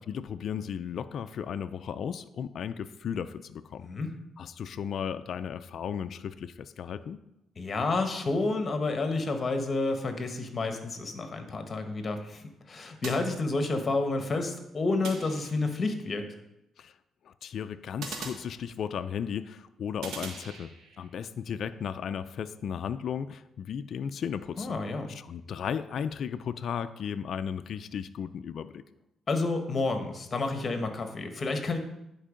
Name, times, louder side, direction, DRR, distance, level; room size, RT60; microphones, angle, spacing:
voice 1, 0.1-3.9 4.4-7.2 16.8-16.9 17.2-20.7 21.0-24.8 25.1-28.8, left 7 dB, 60° left, 11 dB, 0.4 m, -35 dB
voice 2, 3.8-4.1 7.6-16.2 24.6-25.1 29.3-31.8, left 3 dB, 35° left, 6 dB, 1.3 m, -30 dB
sound 1, 13.0-14.0 15.0-15.9 18.0-19.1 20.0-21.1, right 4 dB, 80° right, 1.4 m, -42 dB
10.0 x 4.6 x 5.1 m, 0.86 s
cardioid pair, 90°, 0 cm